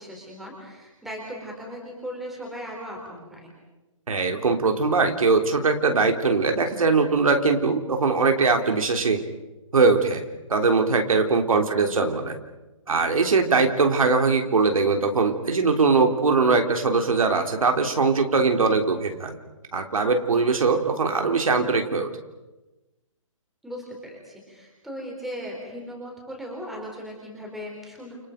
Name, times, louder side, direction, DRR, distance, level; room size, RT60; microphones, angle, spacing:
voice 1, 0.0-3.5 11.7-12.1 23.6-28.1, equal, ahead, -2 dB, 3.9 m, -38 dB
voice 2, 4.1-9.2 9.7-10.2 10.5-12.4 12.9-19.4 19.7-22.1, right 4 dB, 85° right, 4 dB, 3.7 m, -21 dB
29.5 x 29.5 x 5.2 m, 1.1 s
hypercardioid pair, 175°, 17 cm